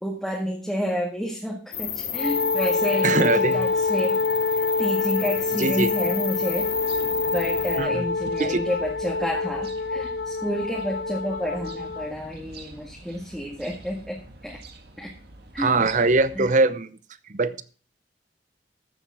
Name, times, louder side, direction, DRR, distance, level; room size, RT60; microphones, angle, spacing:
voice 1, 0.0-4.2 4.5-6.7 7.3-14.6 15.0-15.1 15.5-15.9 16.3-16.5, equal, ahead, -2 dB, 1.7 m, -30 dB
sound 1, 1.7-7.8, left 8 dB, 50° left, 2.7 m, -33 dB
Wind instrument woodwind instrument, 2.1-12.1, left 3 dB, 70° left, 0.7 m, -26 dB
voice 2, 3.0-3.7 5.5-5.9 7.8-8.1 8.4-8.6 15.6-16.9 17.3-17.6, right 3 dB, 45° right, 14 dB, 0.8 m, -22 dB
sound 2, 6.5-16.5, right 2 dB, 60° right, 1.8 m, -46 dB
14.5 x 7.1 x 4.9 m, 0.38 s
head